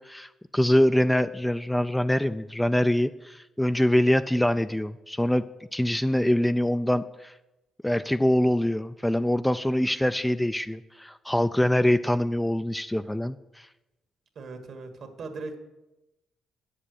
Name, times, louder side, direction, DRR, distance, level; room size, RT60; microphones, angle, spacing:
voice 1, 0.1-5.4 5.7-7.3 7.8-13.7, left 1 dB, 5° left, 11 dB, 0.3 m, -24 dB
voice 2, 14.4-15.5, right 3 dB, 60° right, 5 dB, 1.7 m, -38 dB
8.9 x 7.5 x 6.6 m, 1.0 s
cardioid pair, 90°, 0 cm